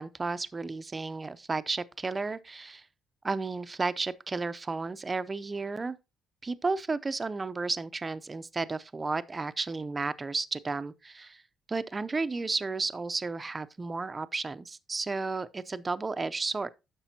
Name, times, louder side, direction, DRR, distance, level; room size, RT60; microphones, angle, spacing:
voice 1, 0.0-2.9 3.2-6.0 6.4-11.4 11.7-16.7, right 3 dB, 20° right, 0.5 m, -33 dB
10.0 x 6.7 x 2.8 m
cardioid pair, 115°, 0 cm